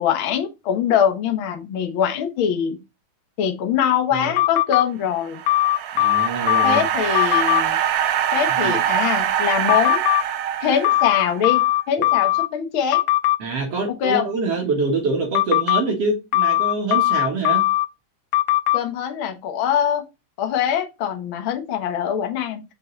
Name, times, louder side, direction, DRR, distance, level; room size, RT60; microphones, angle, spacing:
voice 1, 0.0-2.8 3.4-5.4 6.6-7.8 8.3-10.0 10.6-13.0 14.0-14.3 18.7-20.0 20.4-22.6, left 8 dB, 55° left, 1.7 m, -23 dB
sound 1, 4.4-4.8 5.5-6.8 7.1-7.6 9.7-10.2 10.8-12.5 12.9-13.4 15.3-15.8 16.3-17.9 18.3-18.8, left 16 dB, 80° left, 1.9 m, -19 dB
sound 2, 5.1-11.5, right 10 dB, 85° right, 1.2 m, -24 dB
voice 2, 5.9-6.8 8.6-8.8 13.4-17.6, right 3 dB, 55° right, 2.5 m, -25 dB
6.5 x 5.2 x 4.0 m
omnidirectional pair, 3.6 m